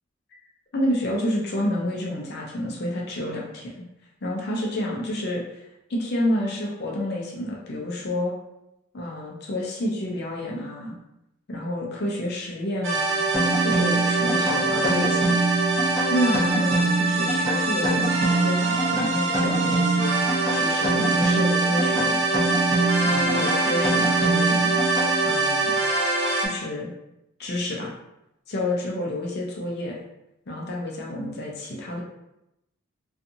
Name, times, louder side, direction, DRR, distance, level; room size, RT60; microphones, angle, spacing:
voice 1, 0.7-3.7 4.2-5.6 5.9-8.3 8.9-10.9 11.5-13.2 13.6-15.4 16.1-20.2 20.5-22.2 23.0-24.7 25.2-25.7 26.4-26.9 27.4-27.9 28.5-30.0 30.5-32.0, left 1 dB, 50° left, -2 dB, 0.5 m, -29 dB
sound 1, 12.8-26.5, right 3 dB, 70° right, 0.6 m, -24 dB
sound 2, 13.3-25.5, right 2 dB, 15° right, 0.7 m, -25 dB
2.6 x 2.4 x 2.6 m, 0.87 s
head